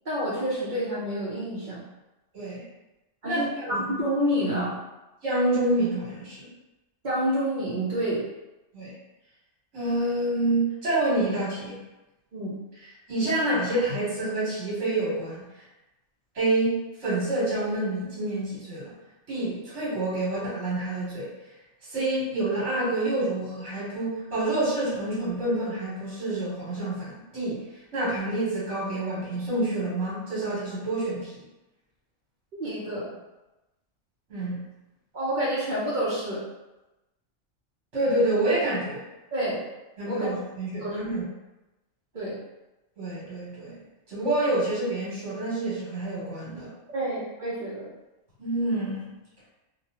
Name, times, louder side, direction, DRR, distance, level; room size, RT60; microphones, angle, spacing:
voice 1, 0.0-1.8 3.2-4.8 7.0-8.3 12.3-12.6 32.6-33.2 35.1-36.4 39.3-39.7 40.0-40.3 40.8-41.0 42.1-42.4 46.9-47.9, equal, 50° right, -7 dB, 0.7 m, -28 dB
voice 2, 2.3-2.6 3.2-3.8 5.2-6.4 8.7-8.9 9.7-11.8 13.1-15.4 16.3-18.9 19.3-21.3 21.9-27.6 27.9-31.3 34.3-34.6 37.9-39.0 40.0-41.2 43.0-43.7 44.1-46.7 48.4-49.1, right 2 dB, 65° right, -8 dB, 1.5 m, -27 dB
2.8 x 2.2 x 2.8 m, 1.0 s
omnidirectional pair, 1.3 m